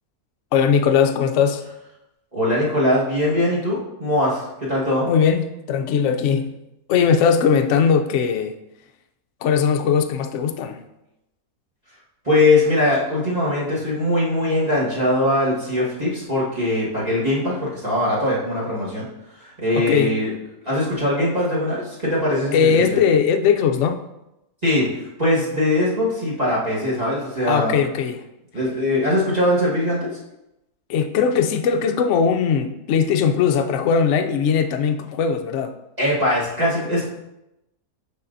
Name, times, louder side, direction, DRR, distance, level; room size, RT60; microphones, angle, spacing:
voice 1, 0.5-1.6 5.1-6.5 6.9-8.5 9.4-10.8 19.8-20.2 22.5-24.0 27.5-28.2 30.9-35.7, left 6 dB, 65° left, 7 dB, 0.7 m, -19 dB
voice 2, 2.3-5.1 12.2-19.1 19.3-20.3 20.6-23.0 24.6-24.9 25.2-27.7 28.5-30.1 36.0-37.1, left 1 dB, 25° right, -8 dB, 1.4 m, -21 dB
9.8 x 4.0 x 2.6 m, 0.90 s
omnidirectional pair, 1.6 m